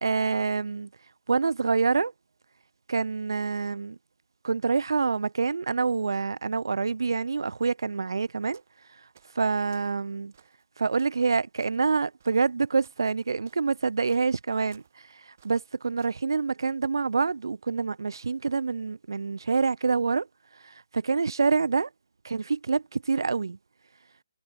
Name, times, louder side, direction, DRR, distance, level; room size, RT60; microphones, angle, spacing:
voice 1, 0.0-0.9 1.3-2.1 2.9-4.0 4.4-8.6 9.4-10.3 10.8-20.3 20.6-21.9 22.2-23.6, right 4 dB, 80° right, 0.4 m, -26 dB
sound 1, 8.5-8.8 9.1-10.0 10.3-16.2, right 7 dB, 40° right, 4.0 m, -60 dB
hypercardioid pair, 175°, 2 cm